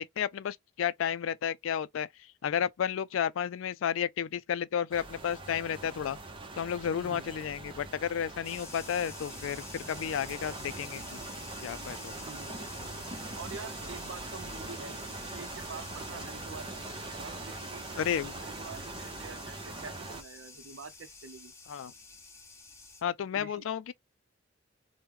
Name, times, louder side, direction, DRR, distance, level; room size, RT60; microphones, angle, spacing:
voice 1, 0.0-2.1 2.4-6.2 6.6-11.2 11.6-12.1 18.0-18.3 21.7-21.9 23.0-23.9, left 8 dB, 90° left, 0.3 m, -32 dB
sound 1, 4.9-20.2, right 2 dB, 25° right, 0.7 m, -42 dB
voice 2, 6.9-7.3 9.8-9.9 12.2-16.9 17.2-21.5 23.3-23.6, right 5 dB, 80° right, 0.6 m, -47 dB
sound 2, 8.4-23.0, left 3 dB, 15° left, 0.9 m, -49 dB
3.1 x 2.1 x 3.4 m
head